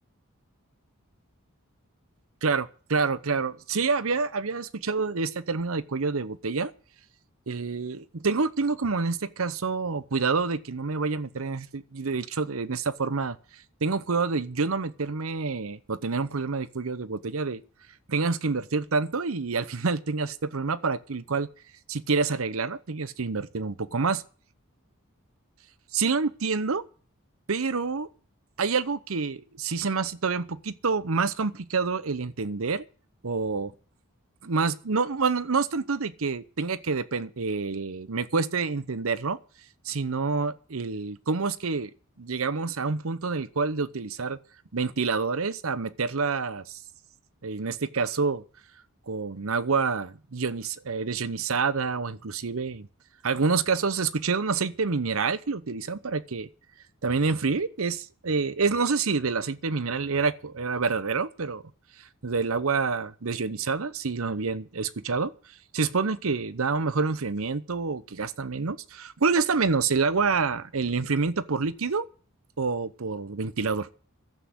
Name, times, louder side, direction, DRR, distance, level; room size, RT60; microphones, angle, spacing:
voice 1, 2.4-6.7 7.5-13.4 13.8-17.6 18.1-21.5 21.9-24.2 25.9-26.8 27.5-28.1 28.6-32.8 33.2-33.7 34.4-39.4 39.8-41.9 42.2-44.4 44.7-46.8 47.4-48.4 49.1-52.9 53.2-56.5 57.0-61.6 62.2-65.3 65.7-72.1 72.6-73.9, right 4 dB, 70° right, 0.8 m, -27 dB
12.0 x 8.4 x 9.5 m
head